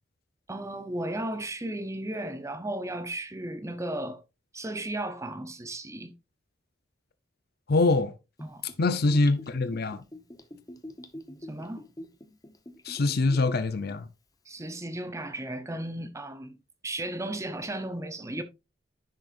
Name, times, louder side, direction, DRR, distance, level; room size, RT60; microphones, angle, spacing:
voice 1, 0.5-4.2 4.5-6.1 8.4-8.6 11.5-11.8 14.5-16.6 16.8-18.4, right 1 dB, 15° right, 0.7 m, -35 dB
voice 2, 7.7-8.1 8.8-10.0 12.8-14.1, left 3 dB, 55° left, 0.7 m, -24 dB
Gurgling / Bathtub (filling or washing), 8.4-13.5 13.9-14.0, left 1 dB, 20° left, 1.0 m, -45 dB
10.5 x 6.4 x 2.5 m
head